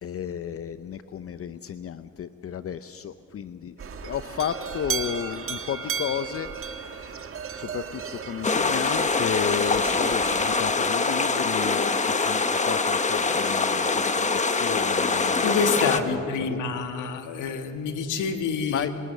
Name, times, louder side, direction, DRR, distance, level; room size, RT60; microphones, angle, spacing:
voice 1, 0.0-3.7 4.0-7.2 7.5-15.6 15.9-16.6 18.7-19.0, left 8 dB, 50° left, 12 dB, 0.7 m, -33 dB
sound 1, 3.8-10.6, right 6 dB, 45° right, 1.5 m, -35 dB
sound 2, 8.4-16.0, left 4 dB, 25° left, 1.2 m, -24 dB
voice 2, 15.4-18.9, left 5 dB, 85° left, 6 dB, 1.8 m, -27 dB
26.5 x 18.5 x 6.7 m, 2.6 s
cardioid pair, 90°, 30 cm